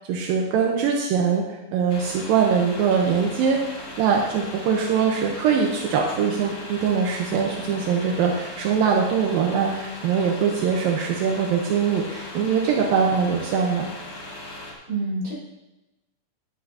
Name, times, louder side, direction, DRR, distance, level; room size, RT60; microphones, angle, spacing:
voice 1, 0.1-13.9, right 6 dB, 80° right, 1 dB, 2.6 m, -22 dB
sound 1, 1.9-14.7, left 2 dB, 45° left, 2.3 m, -38 dB
voice 2, 14.3-15.3, right 2 dB, 20° right, -7 dB, 4.4 m, -30 dB
11.5 x 11.5 x 2.8 m, 0.98 s
omnidirectional pair, 4.3 m